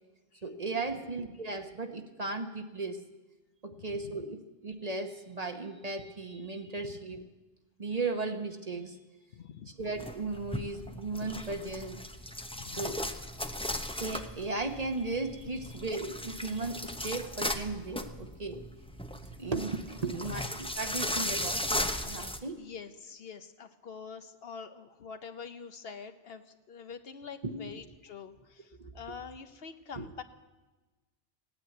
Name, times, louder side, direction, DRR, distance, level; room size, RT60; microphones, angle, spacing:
voice 1, 0.4-3.0 3.6-7.2 7.8-9.0 9.8-12.0 12.8-13.0 13.9-18.6 19.4-22.6 27.4-27.7 28.8-29.0 30.0-30.1, right 3 dB, 35° right, 6 dB, 1.0 m, -36 dB
voice 2, 3.7-4.2 6.8-6.9 9.3-9.7 12.5-13.0 18.1-18.2 22.6-30.2, left 6 dB, 60° left, 9 dB, 1.0 m, -46 dB
sound 1, 9.8-22.4, left 1 dB, 5° left, 0.6 m, -37 dB
17.0 x 9.3 x 9.2 m, 1.2 s
omnidirectional pair, 1.2 m